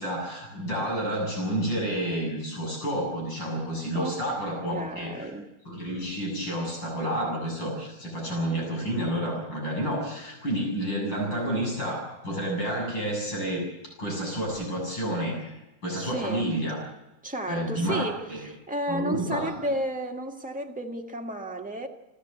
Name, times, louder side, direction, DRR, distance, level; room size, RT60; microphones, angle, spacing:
voice 1, 0.0-5.3 5.7-13.7 14.0-15.5 15.8-16.8 17.5-18.4 18.9-19.5, right 1 dB, 90° left, 8.4 m, -30 dB
voice 2, 4.7-5.5 15.9-16.5 17.2-21.9, right 1 dB, 5° right, 1.6 m, -32 dB
29.0 x 13.0 x 8.3 m
omnidirectional pair, 2.0 m